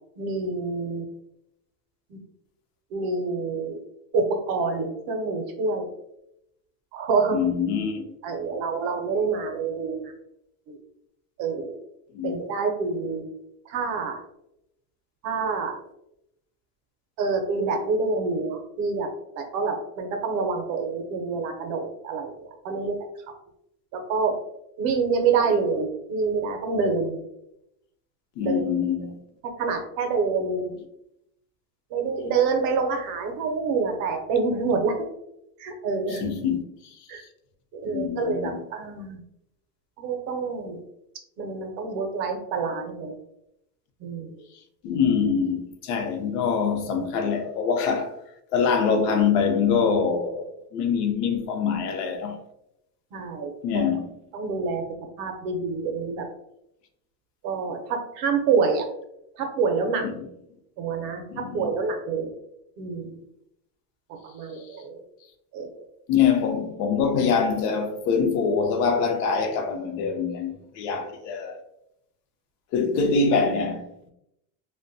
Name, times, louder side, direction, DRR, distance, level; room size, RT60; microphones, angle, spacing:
voice 1, 0.2-1.0 2.1-2.2 2.9-3.8 4.1-5.9 6.9-7.4 8.2-10.1 10.7-10.8 11.4-11.7 12.2-13.2 13.7-14.2 15.2-15.7 17.2-19.1 19.4-23.0 23.9-24.4 24.8-27.2 28.4-28.6 29.0-29.1 29.6-30.7 31.9-35.0 35.6-36.3 37.1-37.2 37.7-39.2 40.0-40.8 41.4-43.1 44.0-44.3 53.1-53.9 54.3-54.8 55.2-56.3 57.4-58.8 59.3-60.1 60.8-62.3 62.8-63.1 64.3-65.0 65.5-65.7, right 4 dB, 50° right, 0.6 m, -27 dB
voice 2, 7.3-8.1 12.1-12.4 28.4-29.2 36.1-36.9 37.8-38.6 44.8-48.2 48.5-52.4 53.6-54.2 60.0-60.2 61.3-61.7 66.1-71.6 72.7-74.1, left 6 dB, 75° left, 0.6 m, -24 dB
2.6 x 2.2 x 2.5 m
supercardioid pair, 135°, 48 cm